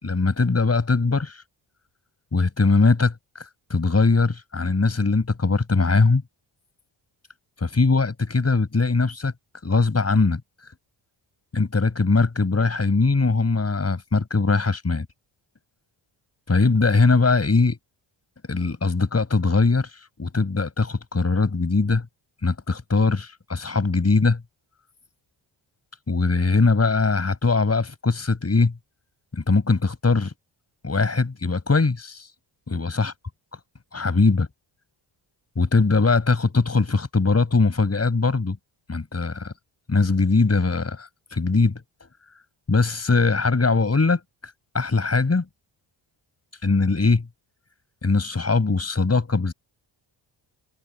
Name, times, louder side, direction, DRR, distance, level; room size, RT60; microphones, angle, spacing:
voice 1, 0.0-1.4 2.3-6.2 7.6-9.3 9.6-10.4 11.5-15.1 16.5-17.8 18.5-19.9 20.2-22.1 22.4-24.4 26.1-28.7 29.3-30.3 30.8-32.3 32.7-33.1 33.9-34.5 35.6-38.6 38.9-39.5 39.9-41.8 42.7-44.2 44.7-45.5 46.6-47.3 48.0-49.5, left 3 dB, 30° left, 5.8 m, -21 dB
cardioid pair, 75°, 49 cm